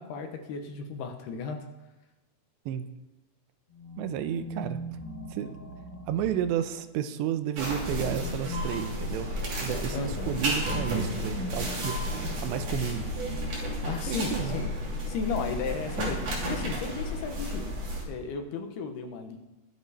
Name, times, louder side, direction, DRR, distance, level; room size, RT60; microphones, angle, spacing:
voice 1, 0.0-1.6 9.9-10.5 13.8-14.7 15.0-17.7 18.1-19.4, left 5 dB, 70° left, 5 dB, 2.8 m, -34 dB
sound 1, 3.7-7.0 7.7-14.3 15.3-17.2, equal, 25° left, 1.2 m, -42 dB
voice 2, 4.0-4.8 5.3-5.6 6.1-9.3 9.6-12.0 12.4-13.1 14.0-14.6, right 10 dB, 85° right, 10 dB, 2.8 m, -32 dB
sound 2, 7.6-18.0, equal, 45° right, 4.0 m, -32 dB
21.5 x 7.6 x 4.2 m, 1.0 s
omnidirectional pair, 5.1 m